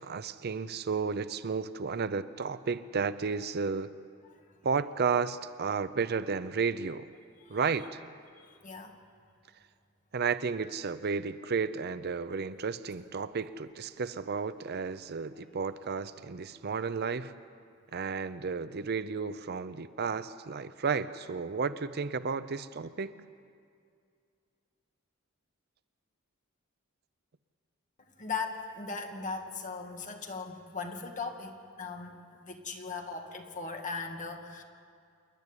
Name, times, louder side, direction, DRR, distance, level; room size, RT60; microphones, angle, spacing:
voice 1, 0.0-3.9 4.6-7.1 7.5-8.0 10.1-17.3 17.9-23.1, right 5 dB, 50° right, 13 dB, 0.6 m, -32 dB
voice 2, 8.6-8.9 28.0-32.1 32.4-34.6, left 4 dB, 40° left, 3 dB, 2.0 m, -38 dB
27.5 x 11.0 x 9.8 m, 2.3 s
head